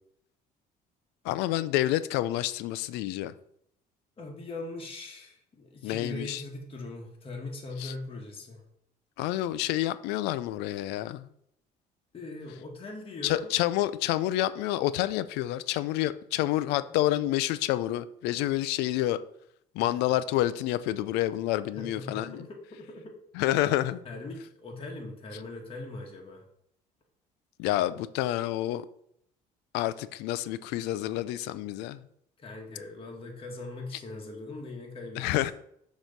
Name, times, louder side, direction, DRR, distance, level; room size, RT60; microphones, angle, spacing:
voice 1, 1.2-3.3 5.8-6.4 7.8-7.9 9.2-11.3 13.2-19.2 19.8-22.5 23.4-24.0 27.6-28.8 29.7-32.0 35.2-35.5, left 14 dB, 85° left, 0.4 m, -28 dB
voice 2, 4.2-8.6 12.1-13.5 16.8-17.0 19.8-19.9 21.7-23.2 24.0-26.4 32.4-35.5, left 2 dB, 35° left, 1.3 m, -41 dB
6.3 x 3.0 x 5.2 m
cardioid pair, 95°, 17 cm